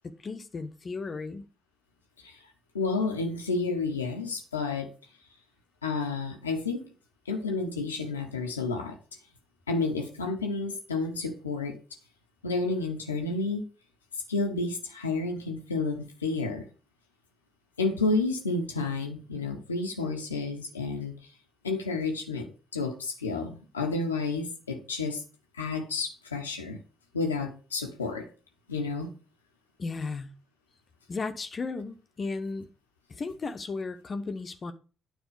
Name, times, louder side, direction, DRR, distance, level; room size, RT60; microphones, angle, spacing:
voice 1, 0.2-1.5 29.8-30.3 31.1-32.7 33.1-34.7, left 4 dB, 40° left, 1.0 m, -35 dB
voice 2, 2.7-4.9 5.8-6.9 7.3-9.0 9.7-11.8 12.4-13.6 14.3-16.7 17.8-21.1 21.6-25.2 25.5-26.8 27.1-28.3 28.7-29.1, left 3 dB, 90° left, 0.9 m, -30 dB
9.2 x 4.4 x 6.8 m
figure-of-eight pair, 45°, 0 cm